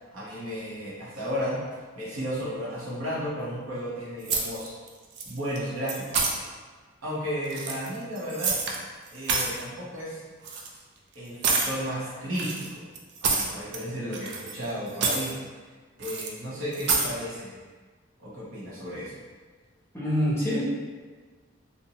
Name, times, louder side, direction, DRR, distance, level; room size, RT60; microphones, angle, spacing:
voice 1, 0.1-1.6 2.0-4.7 5.2-6.3 7.0-8.5 9.1-10.2 11.1-12.9 13.2-15.3 16.0-17.6 18.2-19.1, equal, 80° right, -8 dB, 0.9 m, -33 dB
sound 1, 4.3-4.9 5.2-5.6 5.9-6.3 7.4-8.8 9.1-9.6 10.4-10.7 11.4-11.7 12.3-13.8 14.1-14.6 14.9-15.3 16.0-16.3 16.7-17.1, right 4 dB, 55° right, 0.3 m, -27 dB
voice 2, 19.9-20.6, equal, 10° left, -8 dB, 0.6 m, -25 dB
2.6 x 2.0 x 2.8 m, 1.4 s
head